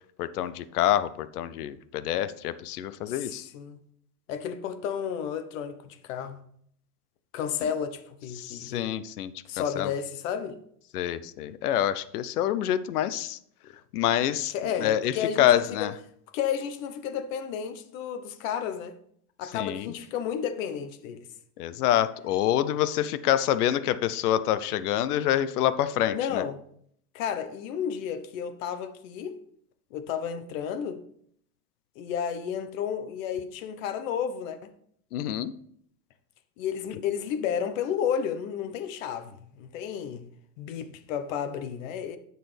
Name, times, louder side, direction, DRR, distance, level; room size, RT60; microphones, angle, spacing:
voice 1, 0.2-3.4 8.4-9.3 9.8-9.9 10.9-13.4 13.9-14.5 14.8-15.9 19.5-19.9 21.6-26.4 35.1-35.5, left 11 dB, 85° left, 0.8 m, -26 dB
voice 2, 3.1-3.8 4.3-6.4 7.3-8.9 9.4-10.6 14.5-15.9 16.3-19.0 19.4-21.2 26.1-26.6 27.1-29.4 29.9-31.0 32.0-34.7 36.6-40.3 40.6-42.2, left 8 dB, 60° left, 1.1 m, -32 dB
10.5 x 6.8 x 3.4 m
supercardioid pair, 140°, 44 cm